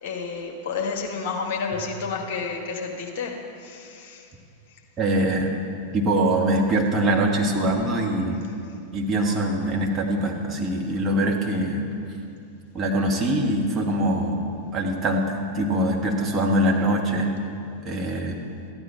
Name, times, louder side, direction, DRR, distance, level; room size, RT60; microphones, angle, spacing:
voice 1, 0.0-4.3, left 5 dB, 50° left, 1 dB, 1.6 m, -30 dB
voice 2, 5.0-5.5 5.9-8.4 8.9-11.9 12.7-15.2 15.5-17.3 17.8-18.4, right 1 dB, 25° right, -1 dB, 1.6 m, -23 dB
13.5 x 9.8 x 4.6 m, 2.5 s
figure-of-eight pair, 90°, 0 cm